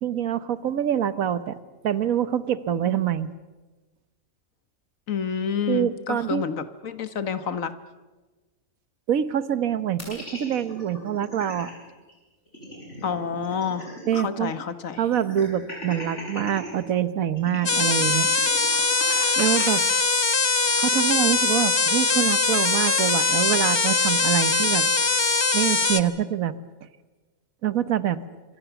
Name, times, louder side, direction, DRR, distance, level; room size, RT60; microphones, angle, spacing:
voice 1, 0.0-1.6 1.8-3.3 5.7-6.4 9.1-11.7 14.1-14.5 15.0-18.3 19.4-19.8 20.8-24.9 25.5-26.5 27.6-28.2, right 10 dB, 80° right, 14 dB, 1.5 m, -25 dB
voice 2, 5.1-7.7 13.0-15.0, left 7 dB, 75° left, 12 dB, 1.6 m, -29 dB
sound 1, 10.0-11.7 12.1-12.2 12.5-14.2 14.5-14.6 15.1-16.7 17.4-19.7, equal, 55° left, 7.6 m, -38 dB
sound 2, 17.7-26.0, left 3 dB, 20° left, 0.9 m, -22 dB
27.0 x 24.5 x 7.0 m, 1.2 s
omnidirectional pair, 1.4 m